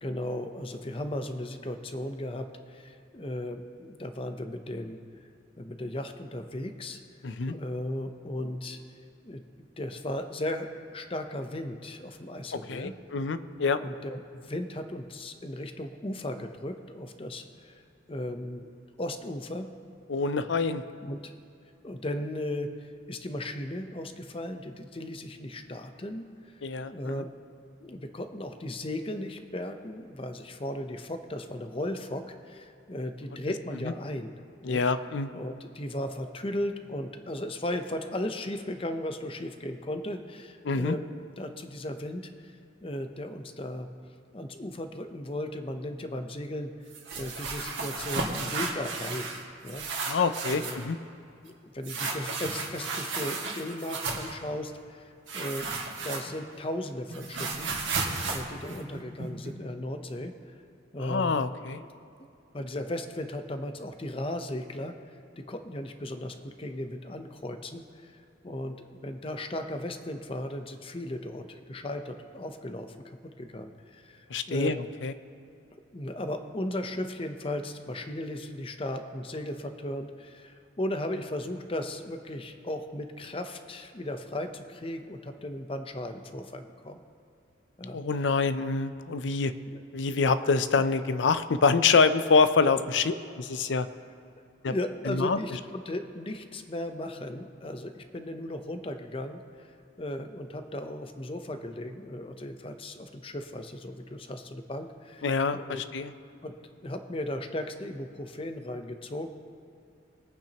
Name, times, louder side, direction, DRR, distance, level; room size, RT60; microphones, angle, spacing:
voice 1, 0.0-5.0 5.6-7.0 7.5-8.8 9.2-9.4 9.8-12.9 13.8-17.8 18.1-18.7 19.0-19.7 21.0-21.3 21.8-27.3 27.8-34.8 35.3-41.0 41.4-42.5 42.8-43.9 44.3-46.7 47.2-49.9 50.5-50.8 51.4-55.7 56.0-58.0 58.2-60.5 60.9-61.3 61.8-61.9 62.5-65.0 65.4-67.8 68.1-73.0 73.4-74.7 75.9-87.0 87.8-88.0 89.7-89.8 94.7-99.7 100.0-105.8 106.4-106.6 106.8-109.3, left 1 dB, 30° left, 7 dB, 0.7 m, -36 dB
voice 2, 7.2-7.6 12.7-13.8 20.1-20.8 26.6-27.2 33.8-33.9 34.6-35.3 40.7-41.0 50.1-51.0 61.0-61.8 74.3-75.1 87.9-89.5 89.9-93.9 94.6-94.7 95.1-95.4 105.2-106.1, left 4 dB, 80° left, 12 dB, 0.5 m, -26 dB
sound 1, 46.9-49.4 49.7-50.8 51.8-54.3 55.3-56.6 56.8-59.5, right 4 dB, 90° right, 1.9 m, -33 dB
22.0 x 8.9 x 2.9 m, 2.7 s
head